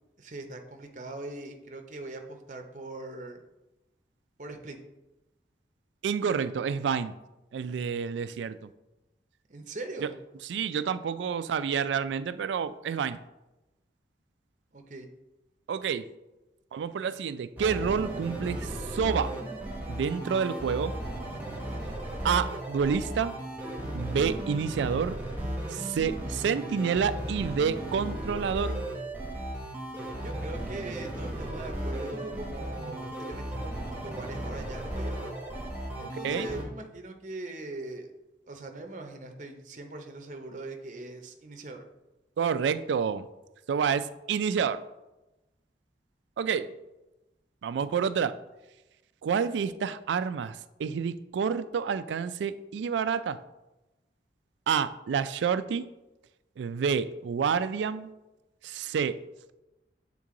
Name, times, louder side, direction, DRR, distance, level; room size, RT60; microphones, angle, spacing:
voice 1, 0.2-3.4 4.4-4.8 9.5-10.2 14.7-15.1 30.2-33.7 34.0-35.3 36.0-38.1 38.5-41.9, right 2 dB, 45° right, 4 dB, 0.6 m, -41 dB
voice 2, 6.0-7.1 7.5-8.7 10.0-10.1 10.5-13.2 15.7-16.1 16.7-19.3 19.9-21.0 22.2-23.3 23.9-25.2 25.7-28.8 36.2-36.5 42.4-43.3 43.7-44.8 46.4-46.7 47.6-48.4 49.2-53.4 54.7-55.9 56.6-58.1 58.6-59.2, right 6 dB, 90° right, 14 dB, 0.3 m, -29 dB
sound 1, 17.6-36.6, right 1 dB, 10° right, 1.0 m, -36 dB
7.3 x 3.8 x 3.7 m, 1.0 s
head